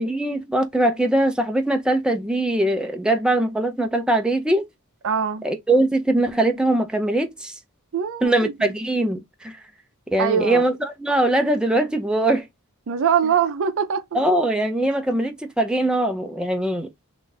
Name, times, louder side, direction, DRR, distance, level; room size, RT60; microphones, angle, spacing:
voice 1, 0.0-4.6 5.4-7.5 8.2-9.6 10.1-12.5 14.1-16.9, right 1 dB, 5° right, 0.4 m, -21 dB
voice 2, 5.0-5.4 7.9-8.7 10.2-10.7 12.9-14.2, right 7 dB, 65° right, 0.5 m, -23 dB
2.6 x 2.3 x 3.8 m
head